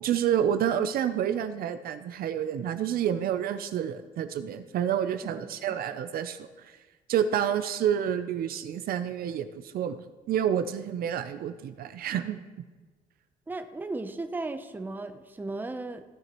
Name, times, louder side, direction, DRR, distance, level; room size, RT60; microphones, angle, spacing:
voice 1, 0.0-6.5 7.1-10.0 10.3-12.4, right 9 dB, 60° right, 10 dB, 0.6 m, -28 dB
voice 2, 13.5-16.0, right 2 dB, 10° right, 9 dB, 0.7 m, -36 dB
15.5 x 7.8 x 3.0 m, 1.3 s
cardioid pair, 110°, 17 cm